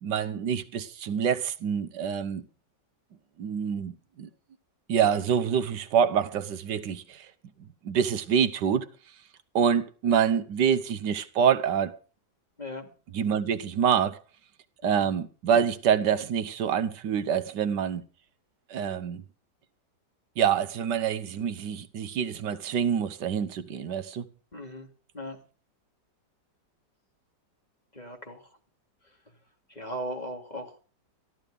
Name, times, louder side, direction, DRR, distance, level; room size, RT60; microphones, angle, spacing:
voice 1, 0.0-2.4 3.4-4.3 4.9-7.3 7.8-8.9 9.5-12.0 13.1-14.2 14.8-18.0 18.7-19.2 20.4-24.3, right 8 dB, 80° right, 1.5 m, -26 dB
voice 2, 24.5-24.9 25.1-25.4 28.0-28.4 29.8-30.8, equal, 25° left, 2.9 m, -37 dB
14.5 x 13.0 x 5.1 m
omnidirectional pair, 1.9 m